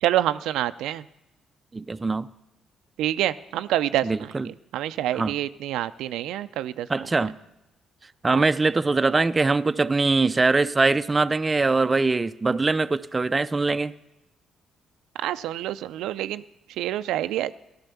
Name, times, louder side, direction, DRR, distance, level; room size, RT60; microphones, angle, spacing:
voice 1, 0.0-1.0 3.0-6.9 8.3-8.4 15.2-16.4 16.8-17.5, right 13 dB, 90° right, 12 dB, 0.5 m, -27 dB
voice 2, 1.7-2.3 4.0-4.5 5.1-5.3 6.9-7.4 8.2-13.9, right 3 dB, 25° right, 12 dB, 0.5 m, -22 dB
15.0 x 12.5 x 7.0 m, 0.92 s
cardioid pair, 90°, 0 cm